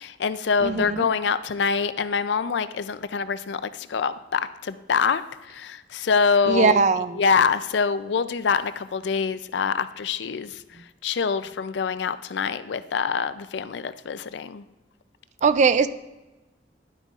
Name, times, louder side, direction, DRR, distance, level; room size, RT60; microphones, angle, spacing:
voice 1, 0.0-5.2 5.5-6.8 7.2-10.6 11.0-14.6, left 5 dB, 70° left, 13 dB, 0.4 m, -25 dB
voice 2, 0.6-1.1 6.5-7.2 15.4-15.9, right 5 dB, 40° right, 13 dB, 0.4 m, -20 dB
11.0 x 9.1 x 2.4 m, 1.1 s
head